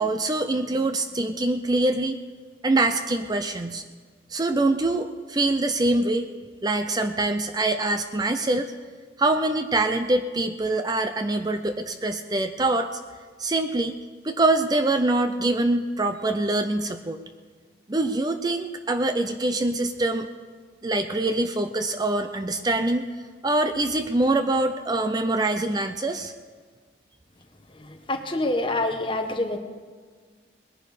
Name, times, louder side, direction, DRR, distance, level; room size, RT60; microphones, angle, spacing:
voice 1, 0.0-2.2 2.6-3.8 4.3-6.3 6.6-8.7 9.2-12.9 13.4-14.0 14.2-17.2 17.9-20.3 20.8-23.1 23.4-26.3, right 2 dB, 20° right, 8 dB, 0.5 m, -24 dB
voice 2, 28.1-29.6, left 2 dB, 30° left, 5 dB, 1.2 m, -26 dB
20.5 x 11.0 x 4.9 m, 1.5 s
head